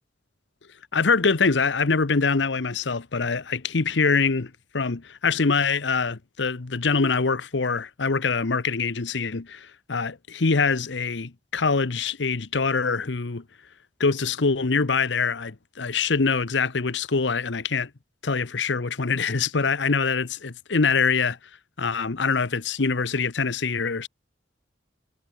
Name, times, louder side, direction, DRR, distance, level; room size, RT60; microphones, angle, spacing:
voice 1, 0.9-13.4 14.0-17.9 18.2-21.4 21.8-24.1, left 4 dB, 80° left, 1.0 m, -24 dB
head